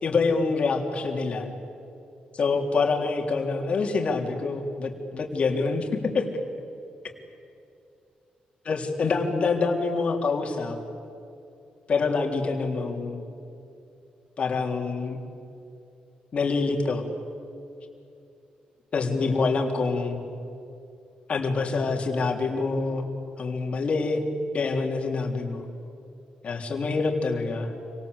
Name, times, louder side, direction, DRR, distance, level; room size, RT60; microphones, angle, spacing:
voice 1, 0.0-1.5 2.3-5.9 6.1-6.3 8.7-10.8 11.9-13.2 14.4-15.2 16.3-17.0 18.9-20.2 21.3-23.1 23.4-24.3 24.5-25.6 26.4-27.7, left 4 dB, 45° left, 2 dB, 3.6 m, -26 dB
29.5 x 24.5 x 8.2 m, 2.7 s
cardioid pair, 130°, 3 cm